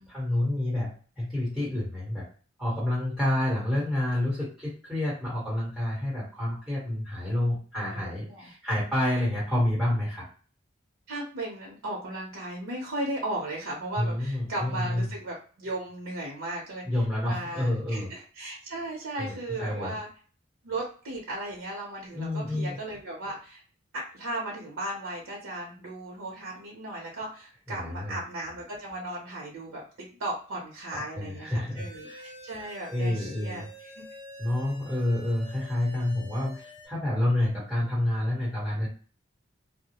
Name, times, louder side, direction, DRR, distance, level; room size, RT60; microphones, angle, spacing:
voice 1, 0.0-2.3 2.6-10.2 14.0-15.1 16.9-18.1 19.2-19.9 22.1-22.8 27.7-28.2 30.9-32.2 32.9-33.7 34.4-38.9, left 1 dB, 5° right, -9 dB, 1.2 m, -29 dB
voice 2, 7.9-8.5 11.1-16.8 17.2-20.1 20.6-23.6 23.9-33.9, right 1 dB, 90° right, -3 dB, 0.7 m, -36 dB
sound 1, 31.8-36.9, equal, 20° left, 1.1 m, -48 dB
2.3 x 2.0 x 2.9 m, 0.40 s
head